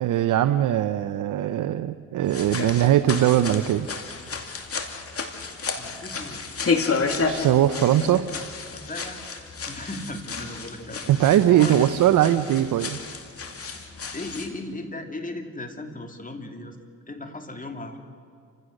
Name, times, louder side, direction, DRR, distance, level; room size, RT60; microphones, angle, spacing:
voice 1, 0.0-3.9 7.2-8.2 11.1-13.0, right 12 dB, 80° right, 9 dB, 0.8 m, -20 dB
sound 1, 2.3-14.5, left 4 dB, 50° left, 2.4 m, -31 dB
voice 2, 5.8-6.5 8.0-8.4 8.7-9.4 9.7-12.2 14.1-16.8 17.1-18.0, left 2 dB, 25° left, 5 dB, 2.9 m, -37 dB
29.0 x 16.0 x 6.6 m, 2.4 s
cardioid pair, 75°, 31 cm